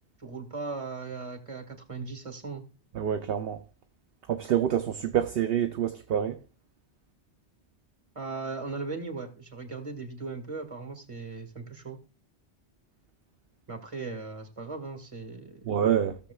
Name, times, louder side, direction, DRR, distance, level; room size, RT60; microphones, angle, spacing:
voice 1, 0.2-2.6 8.2-12.0 13.7-15.6, right 4 dB, 30° right, 1.8 m, -38 dB
voice 2, 2.9-3.6 4.3-6.4 15.7-16.2, right 9 dB, 65° right, 0.8 m, -27 dB
16.5 x 6.8 x 2.3 m
omnidirectional pair, 1.1 m